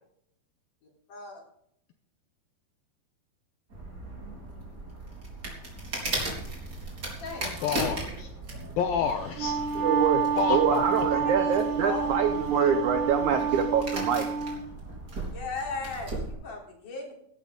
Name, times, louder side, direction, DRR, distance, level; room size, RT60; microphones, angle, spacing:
voice 1, 1.1-1.4 7.2-8.1 11.1-12.2 12.5-12.8 15.3-17.1, left 3 dB, 50° left, -1 dB, 4.8 m, -38 dB
sound 1, 3.7-16.3, right 2 dB, 25° right, 3.9 m, -37 dB
voice 2, 7.6-9.9 10.1-11.2, left 7 dB, 75° left, 6 dB, 2.3 m, -31 dB
Wind instrument woodwind instrument, 9.2-14.6, right 7 dB, 65° right, 4.3 m, -29 dB
voice 3, 9.8-10.2 10.5-14.3, right 7 dB, 80° right, 7 dB, 1.7 m, -25 dB
16.5 x 12.5 x 3.7 m, 0.72 s
omnidirectional pair, 4.8 m